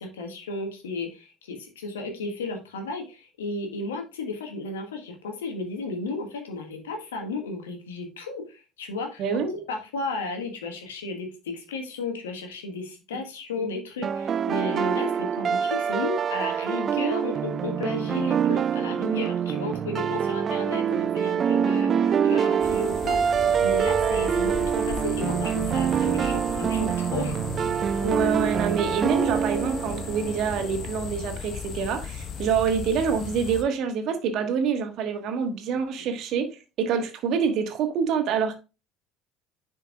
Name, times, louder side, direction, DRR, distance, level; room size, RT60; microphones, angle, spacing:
voice 1, 0.0-27.4, left 3 dB, 80° left, 1.4 m, -34 dB
voice 2, 9.2-9.5 13.6-13.7 28.0-36.5 36.8-38.6, right 6 dB, 55° right, 1.4 m, -26 dB
sound 1, 14.0-30.9, right 8 dB, 40° right, 0.3 m, -25 dB
sound 2, 22.6-33.6, left 6 dB, 50° left, 0.8 m, -36 dB
10.0 x 4.5 x 2.4 m
hypercardioid pair, 65°, 0 cm